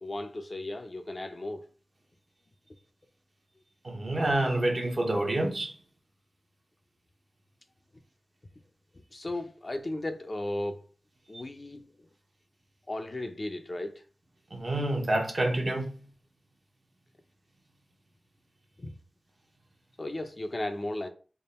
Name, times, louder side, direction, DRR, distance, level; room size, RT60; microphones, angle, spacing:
voice 1, 0.0-1.7 9.1-10.8 11.3-12.1 12.9-14.0 18.8-18.9 20.0-21.1, left 1 dB, 45° left, 0.5 m, -35 dB
voice 2, 3.8-5.7 11.3-11.4 14.5-15.9, right 1 dB, 50° right, 0.9 m, -28 dB
3.5 x 2.1 x 4.1 m
cardioid pair, 50°, 0 cm